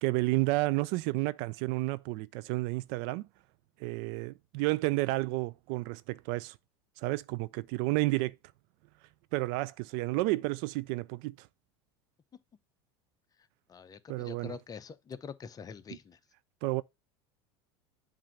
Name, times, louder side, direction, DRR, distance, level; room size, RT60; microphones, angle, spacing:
voice 1, 0.0-3.2 3.8-6.5 7.0-8.3 9.3-11.3 14.1-14.5 16.6-16.8, right 20 dB, 65° right, 0.4 m, -31 dB
voice 2, 13.7-16.2, left 6 dB, 25° left, 0.7 m, -45 dB
7.4 x 2.6 x 5.7 m
hypercardioid pair, 95°, 14 cm